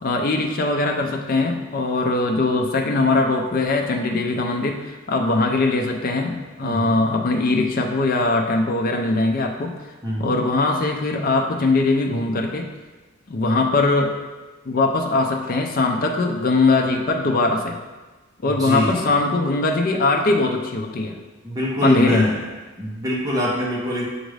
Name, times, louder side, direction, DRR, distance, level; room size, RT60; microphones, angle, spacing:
voice 1, 0.0-9.8 10.2-12.7 13.3-14.1 14.7-17.8 18.4-21.2 21.8-22.3, left 3 dB, 40° left, 3 dB, 0.4 m, -21 dB
voice 2, 6.6-7.0 10.0-10.4 18.4-19.1 21.4-22.4 22.8-24.1, left 1 dB, 15° right, -5 dB, 0.8 m, -24 dB
6.1 x 2.5 x 3.2 m, 1.2 s
head